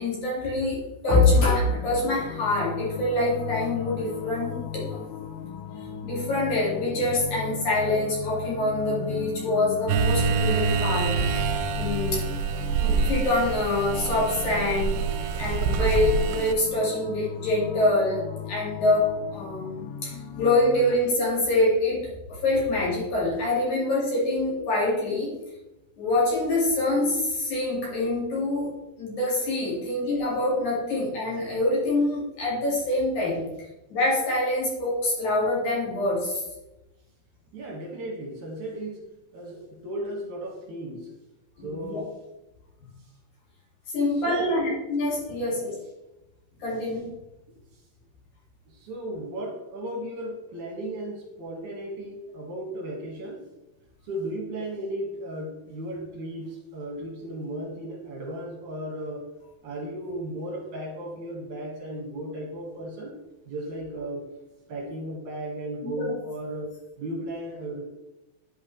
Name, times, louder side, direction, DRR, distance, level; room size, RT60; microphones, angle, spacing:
voice 1, 0.0-5.0 6.0-11.2 11.7-12.2 12.8-15.0 15.4-22.1 22.4-25.3 26.0-33.4 33.9-36.4 41.6-42.0 43.9-45.8 46.6-47.1 65.8-65.9, left 2 dB, 55° left, -5 dB, 3.3 m, -25 dB
sound 1, 1.2-20.9, left 7 dB, 90° left, 1.8 m, -36 dB
sound 2, 9.9-16.5, right 6 dB, 85° right, 2.5 m, -26 dB
voice 2, 37.5-39.1 39.3-41.1 41.6-42.1 44.2-44.6 45.3-45.6 48.7-53.4 54.0-59.3 59.6-63.2 63.5-64.2 64.7-67.8, right 1 dB, 55° right, -2 dB, 2.8 m, -35 dB
10.5 x 5.5 x 3.2 m, 0.97 s
omnidirectional pair, 4.5 m